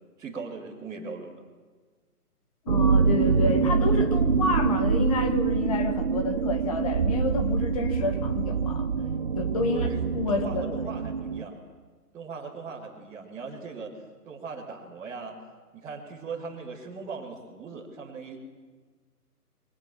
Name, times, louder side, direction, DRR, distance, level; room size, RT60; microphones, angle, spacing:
voice 1, 0.2-1.3 9.6-11.6 12.1-13.9 14.2-15.3 15.7-18.4, right 4 dB, 5° right, 1.7 m, -39 dB
voice 2, 2.6-8.9 9.4-10.8, left 3 dB, 20° left, 1.5 m, -29 dB
sound 1, 2.7-11.4, right 5 dB, 35° right, 1.1 m, -25 dB
27.5 x 23.0 x 7.4 m
figure-of-eight pair, 145°, 47 cm